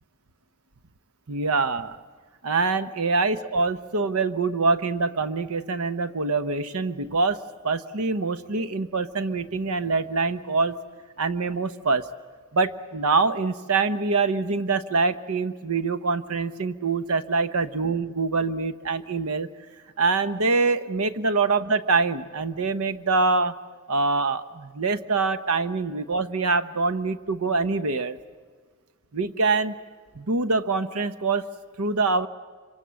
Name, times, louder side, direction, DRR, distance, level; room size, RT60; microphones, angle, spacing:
voice 1, 1.3-2.0 2.4-7.4 7.6-10.8 11.2-12.1 12.5-19.5 20.0-23.5 23.9-28.2 29.1-29.7 30.1-31.5 31.8-32.3, right 3 dB, 85° right, 12 dB, 1.0 m, -24 dB
26.0 x 24.0 x 7.6 m, 1.5 s
head